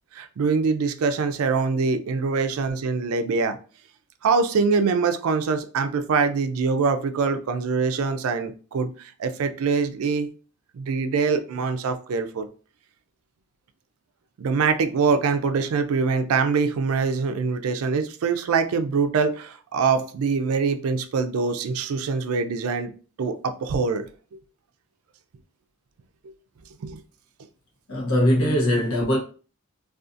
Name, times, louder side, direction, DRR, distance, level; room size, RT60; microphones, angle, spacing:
voice 1, 0.1-3.6 4.2-10.3 10.7-12.5 14.4-22.9 23.2-24.1 26.8-27.0, right 5 dB, 85° right, 0.4 m, -24 dB
voice 2, 27.9-29.2, equal, 80° left, 0.8 m, -21 dB
2.5 x 2.3 x 2.4 m
head